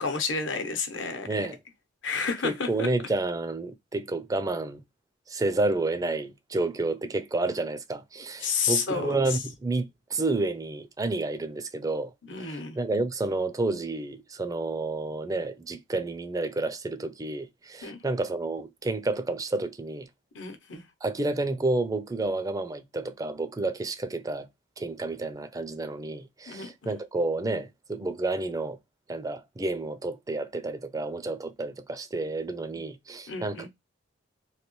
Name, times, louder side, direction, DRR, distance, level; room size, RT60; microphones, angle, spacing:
voice 1, 0.0-1.5 2.0-2.9 8.4-9.4 12.2-12.8 17.8-18.0 20.3-20.8 26.5-26.9 32.7-32.8 33.3-33.7, left 5 dB, 75° left, 0.9 m, -31 dB
voice 2, 1.3-1.6 2.4-4.8 5.3-12.1 12.5-20.1 21.0-24.5 24.8-28.8 29.1-33.7, right 2 dB, 20° right, 0.4 m, -30 dB
3.1 x 2.7 x 3.0 m
head